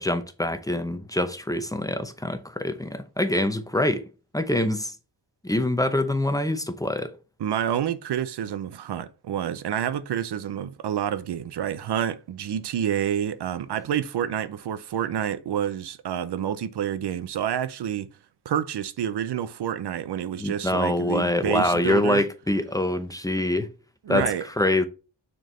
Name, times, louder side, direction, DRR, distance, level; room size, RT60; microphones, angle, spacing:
voice 1, 0.0-4.1 4.3-4.9 5.4-7.1 20.4-23.7 24.1-24.3 24.6-24.8, left 1 dB, 10° left, 0.7 m, -25 dB
voice 2, 7.4-18.1 18.4-22.2 24.1-24.4, right 9 dB, 75° right, 0.6 m, -28 dB
6.3 x 4.6 x 3.2 m
wide cardioid pair, 100°, 40 cm